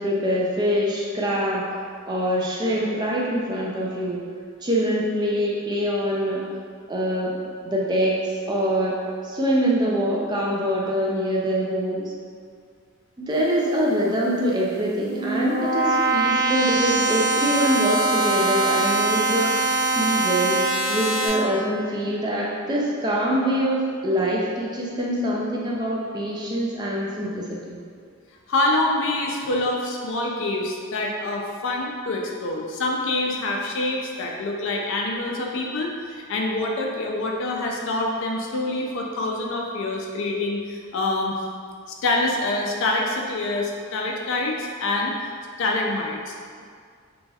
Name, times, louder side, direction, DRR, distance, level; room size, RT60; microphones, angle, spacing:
voice 1, 0.0-1.7 2.1-4.2 4.6-6.4 6.9-7.4 7.6-8.2 8.5-8.9 9.2-12.1 13.2-20.6 20.9-27.8, equal, 20° right, -4 dB, 0.3 m, -24 dB
sound 1, 14.8-21.3, right 2 dB, 30° left, 0.7 m, -23 dB
voice 2, 28.5-41.4 42.0-45.2 45.6-46.3, left 2 dB, 60° left, 0 dB, 0.4 m, -26 dB
2.9 x 2.7 x 2.3 m, 2.1 s
head